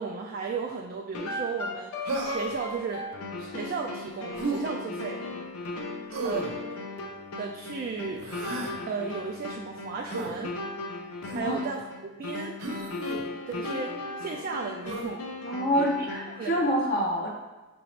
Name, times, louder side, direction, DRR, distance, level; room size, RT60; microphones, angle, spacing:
voice 1, 0.0-3.1 3.4-5.2 6.2-6.8 7.4-8.3 8.9-10.6 11.3-12.6 13.5-15.2 16.0-16.1 16.4-16.6, right 5 dB, 45° right, 1 dB, 0.3 m, -35 dB
sound 1, 1.1-16.4, left 2 dB, 85° left, 0.5 m, -37 dB
Human voice, 2.1-2.6 4.4-4.6 6.1-6.5 8.2-8.8 10.1-10.3 11.2-11.5 12.6-13.2 14.9-15.1, right 2 dB, 85° right, 0.8 m, -33 dB
voice 2, 15.4-17.3, equal, 45° left, -3 dB, 0.6 m, -26 dB
5.7 x 2.6 x 3.2 m, 1.2 s
head